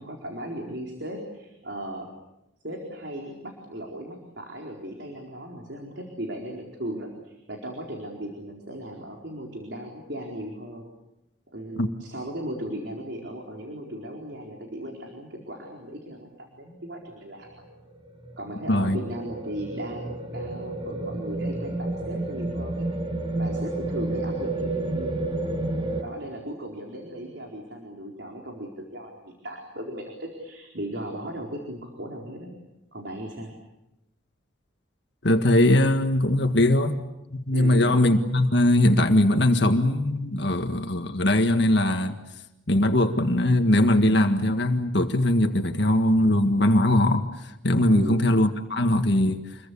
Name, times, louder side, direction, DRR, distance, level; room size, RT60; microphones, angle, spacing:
voice 1, 0.0-2.1 2.6-10.9 11.5-17.6 18.4-22.9 23.3-25.2 26.0-32.5 32.9-33.5 37.5-38.0 47.9-48.2, right 1 dB, 60° right, 1 dB, 4.4 m, -37 dB
sound 1, 17.5-26.0, right 2 dB, 25° right, 1.9 m, -30 dB
voice 2, 18.7-19.0 35.2-37.0 37.3-42.2 42.7-47.3 47.6-49.4, left 1 dB, 60° left, 6 dB, 1.7 m, -21 dB
28.5 x 22.5 x 8.5 m, 0.93 s
head